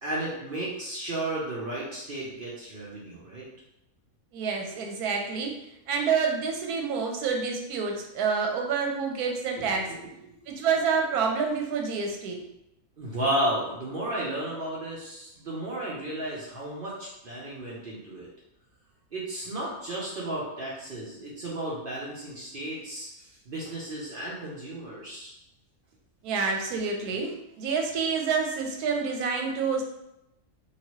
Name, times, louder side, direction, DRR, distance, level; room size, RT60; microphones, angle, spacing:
voice 1, 0.0-3.4 9.6-10.4 13.0-18.3 19.1-23.1 23.5-25.3, right 1 dB, 55° right, -6 dB, 0.6 m, -33 dB
voice 2, 4.3-5.5 5.9-9.9 10.5-12.4 26.2-29.8, right 5 dB, 85° right, 2 dB, 1.1 m, -28 dB
2.9 x 2.4 x 3.0 m, 0.85 s
omnidirectional pair, 1.6 m